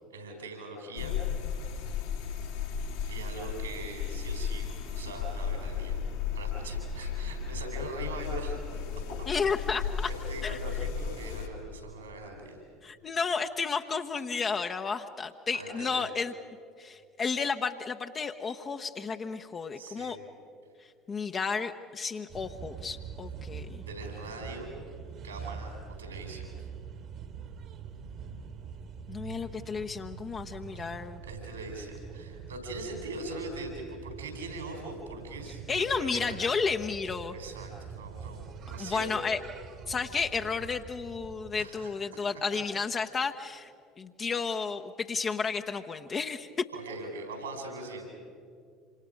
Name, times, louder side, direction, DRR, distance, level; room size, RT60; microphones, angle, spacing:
voice 1, 0.1-1.2 3.1-6.1 6.3-8.7 10.0-12.7 15.5-16.0 19.7-20.2 23.9-24.7 25.2-25.7 26.0-26.4 30.7-31.0 31.2-36.4 37.3-39.1 41.6-41.9 42.5-42.6 46.7-48.1, right 2 dB, 80° right, 3 dB, 4.3 m, -41 dB
sound 1, 1.0-11.5, left 7 dB, 70° left, 2.4 m, -34 dB
voice 2, 9.3-10.1 10.4-10.6 12.8-16.3 16.8-20.2 21.1-23.8 29.1-31.2 35.7-37.4 38.8-39.4 39.9-43.7 44.0-46.5, left 5 dB, 30° left, 5 dB, 0.9 m, -32 dB
sound 2, 22.3-41.7, right 6 dB, 50° right, 1.7 m, -44 dB
26.5 x 26.0 x 5.2 m, 2.4 s
figure-of-eight pair, 65°, 0 cm